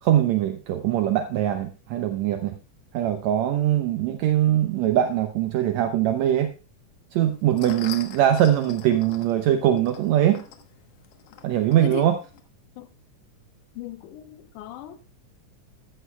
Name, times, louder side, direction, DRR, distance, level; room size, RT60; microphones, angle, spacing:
voice 1, 0.0-2.6 2.9-6.5 7.1-10.4 11.4-12.2, right 11 dB, 75° right, 7 dB, 1.8 m, -22 dB
sound 1, 7.2-12.4, left 8 dB, 60° left, 2.0 m, -44 dB
voice 2, 13.8-15.0, left 9 dB, 90° left, 9 dB, 2.5 m, -37 dB
14.0 x 12.5 x 2.3 m, 0.33 s
omnidirectional pair, 3.5 m